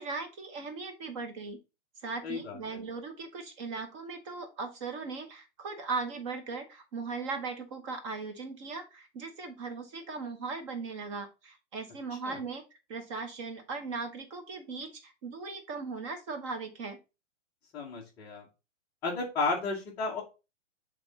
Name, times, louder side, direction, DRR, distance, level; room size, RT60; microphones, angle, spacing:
voice 1, 0.0-1.6 2.0-12.6 12.9-17.0, right 4 dB, 25° right, 6 dB, 1.0 m, -38 dB
voice 2, 2.2-2.6 12.2-12.4 17.7-18.4 19.0-20.2, left 3 dB, 10° left, -6 dB, 0.6 m, -33 dB
7.2 x 3.6 x 3.9 m, 0.29 s
hypercardioid pair, 165°, 36 cm